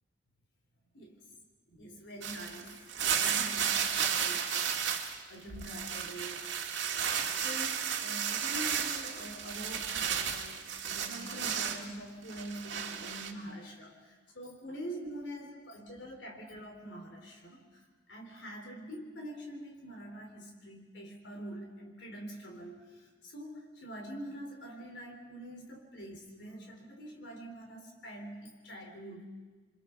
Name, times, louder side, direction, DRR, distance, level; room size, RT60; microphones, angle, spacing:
voice 1, 1.7-4.6 5.3-6.5 7.1-17.8 18.1-29.3, right 1 dB, 75° left, 1 dB, 3.7 m, -45 dB
sound 1, 2.2-5.2 5.5-11.9 12.3-13.3, right 8 dB, 90° right, 1.9 m, -33 dB
28.5 x 25.0 x 4.6 m, 1.3 s
head